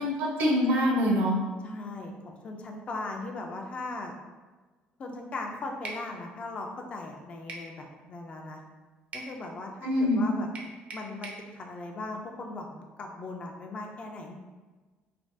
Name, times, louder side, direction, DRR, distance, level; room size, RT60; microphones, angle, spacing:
voice 1, 0.0-1.3 9.8-10.2, equal, 65° right, -2 dB, 0.7 m, -24 dB
voice 2, 1.6-4.1 5.0-8.6 9.1-10.5 10.9-14.4, left 2 dB, 35° left, 2 dB, 0.3 m, -38 dB
sound 1, 5.8-6.1 7.5-7.7 9.1-9.3 10.5-11.4, right 3 dB, 40° right, 0.4 m, -40 dB
3.2 x 2.2 x 2.6 m, 1.3 s
cardioid pair, 150°, 4 cm